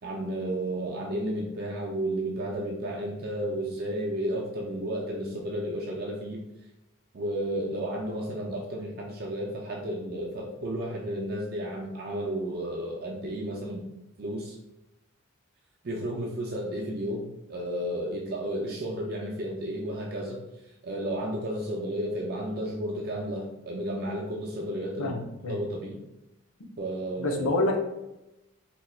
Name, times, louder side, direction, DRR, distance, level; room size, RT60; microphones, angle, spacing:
voice 1, 0.0-6.4 7.1-13.8 14.2-14.6 15.8-25.2 25.5-26.0 26.8-27.7, right 1 dB, 45° right, -2 dB, 0.4 m, -32 dB
voice 2, 25.0-25.6 27.2-27.8, left 2 dB, 75° left, 2 dB, 0.6 m, -27 dB
4.3 x 2.8 x 2.3 m, 0.94 s
head